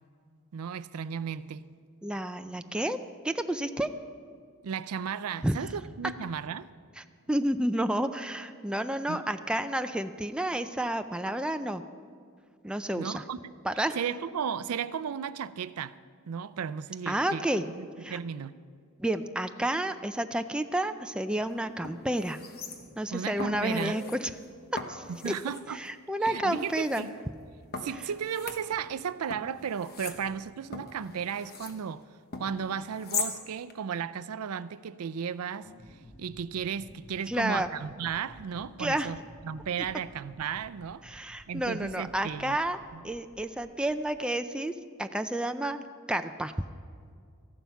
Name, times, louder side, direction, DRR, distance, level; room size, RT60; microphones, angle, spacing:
voice 1, 0.5-1.7 4.6-6.7 9.1-9.2 12.9-13.5 13.9-16.0 16.3-18.5 23.1-24.0 25.1-25.8 26.2-27.1 27.7-32.0 32.4-42.6 42.9-43.0, right 7 dB, 85° right, 0.4 m, -35 dB
voice 2, 2.0-3.0 3.2-3.9 5.4-5.5 7.0-11.8 12.6-13.2 13.6-14.0 17.1-17.7 18.0-18.2 19.0-22.4 23.0-24.3 24.9-25.3 25.7-27.1 37.3-37.7 38.8-39.1 41.0-42.8 43.0-44.7 45.0-46.5, right 1 dB, 5° right, 0.4 m, -30 dB
sound 1, 21.3-21.4 21.8-23.1 23.4-24.2 24.8-25.7 26.3-27.0 27.7-29.0 29.3-31.8 32.3-33.4 33.7-33.8, left 4 dB, 45° left, 1.2 m, -39 dB
sound 2, 35.6-44.2, left 1 dB, 15° left, 1.4 m, -54 dB
14.0 x 11.5 x 5.7 m
head